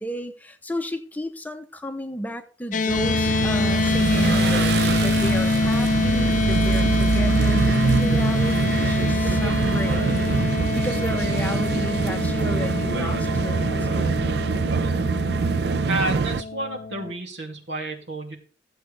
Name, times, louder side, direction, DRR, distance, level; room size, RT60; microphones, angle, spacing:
voice 1, 0.0-10.1 10.7-14.3, equal, 10° left, 0.7 m, -33 dB
sound 1, 2.7-17.1, left 4 dB, 45° left, 0.5 m, -25 dB
sound 2, 2.9-16.4, right 5 dB, 65° right, 0.4 m, -24 dB
voice 2, 15.9-18.4, right 2 dB, 85° right, 2.5 m, -30 dB
14.5 x 7.9 x 3.3 m
head